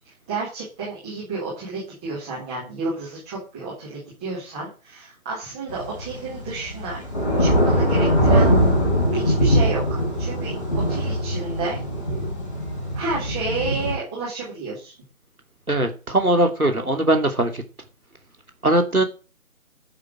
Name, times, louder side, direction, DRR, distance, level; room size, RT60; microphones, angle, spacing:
voice 1, 0.3-7.0 7.4-8.5 9.1-10.5 10.9-11.8 12.9-14.9, right 3 dB, 5° right, 1.5 m, -31 dB
Thunder / Rain, 5.7-13.9, equal, 25° left, 4.4 m, -21 dB
voice 2, 15.7-17.6 18.6-19.0, right 1 dB, 85° right, 2.7 m, -20 dB
12.5 x 5.6 x 7.7 m
figure-of-eight pair, 160°, 43 cm